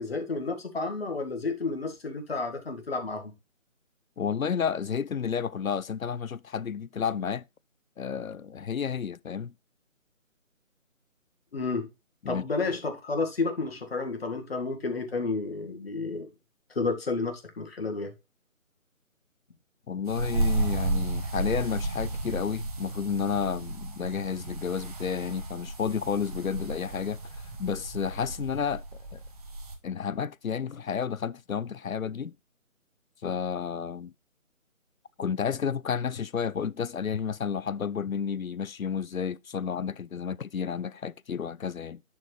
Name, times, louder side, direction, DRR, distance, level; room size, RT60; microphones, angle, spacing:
voice 1, 0.0-3.3 11.5-11.9 12.3-16.3 16.7-18.1, left 3 dB, 45° left, 2.0 m, -31 dB
voice 2, 4.2-7.4 8.0-9.5 12.2-12.4 19.9-27.2 27.6-28.8 29.1-29.2 29.8-32.3 33.2-34.1 35.2-42.0, left 7 dB, 85° left, 0.6 m, -31 dB
sound 1, 20.1-29.7, right 2 dB, 30° right, 1.4 m, -33 dB
10.5 x 4.6 x 3.3 m
figure-of-eight pair, 155°, 41 cm